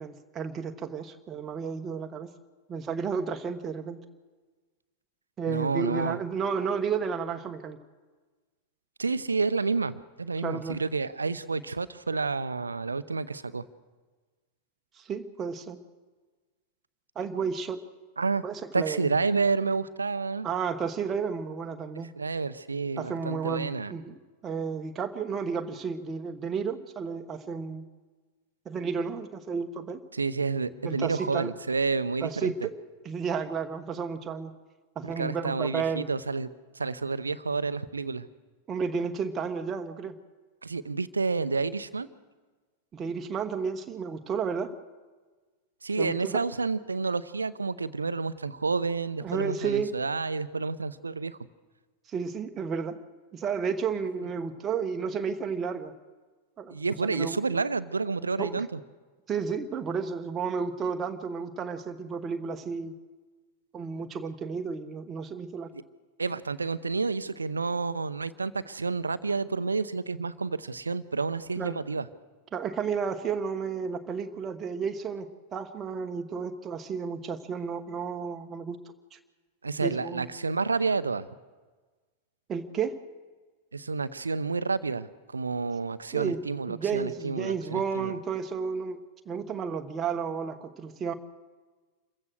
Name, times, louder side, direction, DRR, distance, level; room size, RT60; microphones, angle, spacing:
voice 1, 0.0-2.3 2.7-4.0 5.4-7.8 10.4-10.8 15.0-15.8 17.1-17.8 18.4-19.1 20.4-22.1 23.0-24.1 24.4-27.8 28.6-30.0 30.8-31.5 32.2-32.7 33.0-34.5 35.0-36.1 38.7-40.2 42.9-44.7 46.0-46.4 49.2-49.9 52.1-53.0 53.3-55.9 56.6-56.8 57.0-57.4 58.4-58.7 59.3-62.9 63.7-65.7 71.6-71.8 72.5-78.8 79.1-79.2 79.8-80.3 82.5-83.0 86.1-91.1, right 6 dB, 25° right, 6 dB, 1.2 m, -32 dB
voice 2, 5.5-6.2 9.0-13.6 18.2-18.4 18.7-20.5 22.2-23.9 30.1-32.5 35.2-36.5 36.8-38.3 40.6-42.1 45.8-51.4 56.7-58.8 66.2-72.1 79.6-81.3 83.7-88.2, right 4 dB, 75° right, 16 dB, 0.7 m, -29 dB
27.0 x 15.0 x 6.4 m, 1.4 s
figure-of-eight pair, 90°, 0 cm